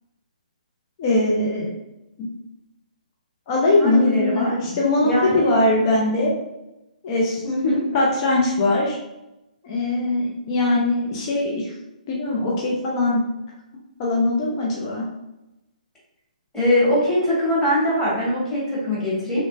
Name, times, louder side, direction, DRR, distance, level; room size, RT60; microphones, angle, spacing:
voice 1, 1.0-1.7 2.2-2.3 3.5-6.3 7.0-7.4 7.9-9.0 9.6-11.7 12.1-13.2 14.0-15.0, left 2 dB, 30° left, -3 dB, 0.6 m, -21 dB
voice 2, 3.8-4.7 5.0-5.5 7.4-7.8 16.5-19.4, left 1 dB, 10° left, -8 dB, 1.3 m, -22 dB
3.2 x 3.1 x 2.6 m, 0.94 s
figure-of-eight pair, 125°, 5 cm